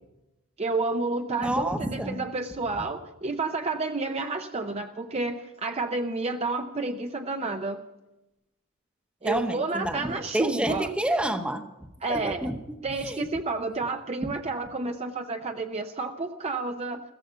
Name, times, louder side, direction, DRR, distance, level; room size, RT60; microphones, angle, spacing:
voice 1, 0.6-7.8 9.2-10.9 12.0-12.5 12.8-17.0, right 3 dB, 30° right, 5 dB, 0.6 m, -30 dB
voice 2, 1.4-2.2 9.2-11.6 12.1-12.8 13.0-13.3, right 1 dB, 5° right, 7 dB, 0.9 m, -29 dB
15.0 x 14.5 x 5.6 m, 0.95 s
head